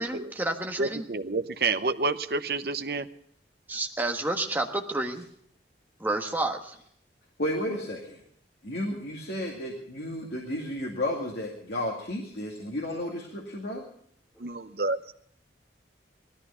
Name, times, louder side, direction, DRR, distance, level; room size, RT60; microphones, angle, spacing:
voice 1, 0.0-1.1 3.7-5.2 6.0-6.7, right 2 dB, 10° right, 3 dB, 1.3 m, -30 dB
voice 2, 0.8-3.1 14.4-15.1, right 3 dB, 60° right, 11 dB, 0.8 m, -29 dB
voice 3, 7.4-8.2 8.6-13.9, left 1 dB, 65° left, -1 dB, 2.2 m, -32 dB
18.5 x 13.5 x 5.6 m, 0.66 s
head